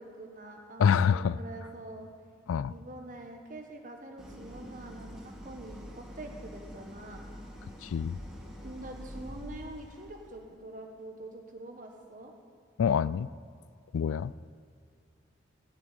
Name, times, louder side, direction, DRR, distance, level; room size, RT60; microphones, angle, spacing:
voice 1, 0.0-2.1 2.7-7.3 8.6-12.3, right 2 dB, 40° right, 3 dB, 1.4 m, -45 dB
voice 2, 0.8-1.4 2.5-2.7 7.8-8.2 12.8-13.3 13.9-14.3, left 7 dB, 75° left, 19 dB, 0.3 m, -26 dB
Idling, 4.2-10.3, equal, 5° right, 1.9 m, -46 dB
15.0 x 6.2 x 9.1 m, 2.4 s
head